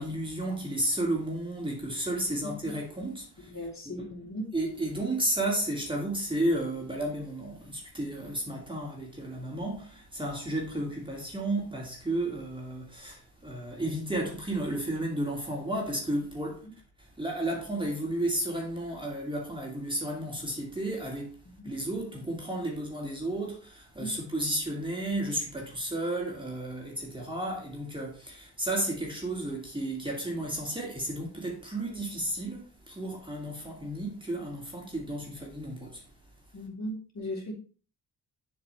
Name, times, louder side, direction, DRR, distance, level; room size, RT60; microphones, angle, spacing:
voice 1, 0.0-3.5 3.9-4.1 4.5-16.6 17.0-36.0, right 1 dB, 10° right, 2.5 m, -33 dB
voice 2, 2.4-2.7 3.5-4.4 16.6-16.7 21.6-21.7 24.0-24.2 36.5-37.5, equal, 45° left, 3.5 m, -38 dB
7.5 x 6.0 x 3.3 m
cardioid pair, 70°, 39 cm